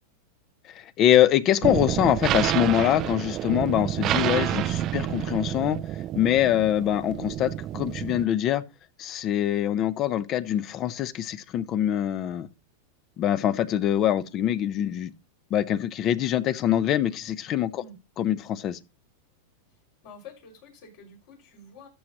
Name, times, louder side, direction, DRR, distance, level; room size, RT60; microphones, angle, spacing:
voice 1, 0.7-5.8 6.1-8.6 9.0-12.5 13.2-15.1 15.5-17.8 18.2-18.8, left 11 dB, 40° left, 0.8 m, -24 dB
sound 1, 1.6-8.2, right 13 dB, 40° right, 0.4 m, -29 dB
voice 2, 20.0-21.9, left 4 dB, 60° left, 5.9 m, -48 dB
13.5 x 6.5 x 3.0 m
hypercardioid pair, 120°, 0 cm